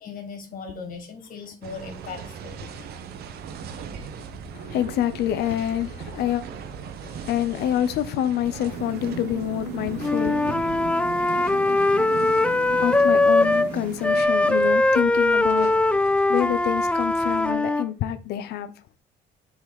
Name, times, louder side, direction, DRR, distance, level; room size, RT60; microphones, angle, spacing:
voice 1, 0.0-2.6, left 5 dB, 55° left, 2.5 m, -38 dB
sound 1, 1.6-17.5, right 6 dB, 70° right, 1.0 m, -40 dB
voice 2, 4.5-6.4 7.0-18.7, left 11 dB, 75° left, 0.7 m, -28 dB
sound 2, 8.7-14.2, right 5 dB, 85° right, 1.7 m, -36 dB
Wind instrument woodwind instrument, 10.0-13.7 14.0-17.9, left 2 dB, 5° left, 0.3 m, -21 dB
7.2 x 4.1 x 4.9 m
cardioid pair, 110°, 17 cm